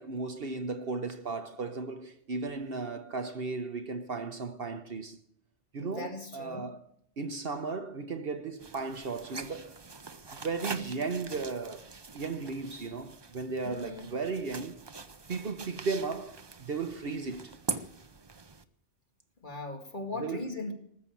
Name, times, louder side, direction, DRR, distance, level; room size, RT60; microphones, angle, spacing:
voice 1, 0.0-5.2 5.7-6.8 7.2-9.8 10.4-11.9 12.1-14.8 15.3-17.6 20.2-20.4, right 4 dB, 55° right, 1.1 m, -35 dB
voice 2, 5.8-6.7 13.6-14.1 19.4-20.7, left 2 dB, 40° left, 2.3 m, -39 dB
sound 1, 8.6-18.6, right 4 dB, 30° right, 0.6 m, -43 dB
19.0 x 7.6 x 8.3 m
omnidirectional pair, 1.3 m